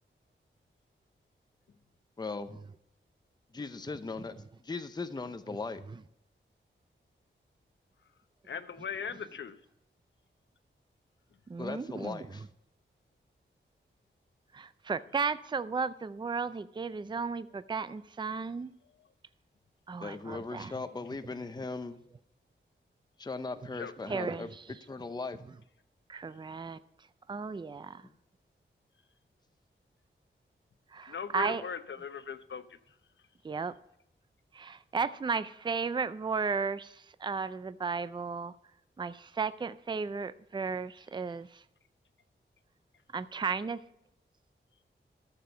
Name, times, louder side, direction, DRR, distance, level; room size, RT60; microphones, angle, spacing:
voice 1, 2.2-2.6 3.5-5.8 11.6-12.4 20.0-22.0 23.2-24.5 24.9-25.4 28.0-28.1, left 3 dB, 20° left, 10 dB, 0.6 m, -38 dB
voice 2, 8.4-9.5 23.7-23.9 31.1-32.8, left 6 dB, 70° left, 11 dB, 0.8 m, -39 dB
voice 3, 11.5-12.3 14.5-18.7 19.9-20.8 24.1-24.6 26.1-26.8 27.3-28.0 30.9-31.6 33.4-33.7 34.5-38.5 39.0-41.6 43.1-43.8, right 5 dB, 25° right, 14 dB, 0.4 m, -34 dB
13.0 x 6.9 x 5.5 m, 0.81 s
wide cardioid pair, 125°, 20 cm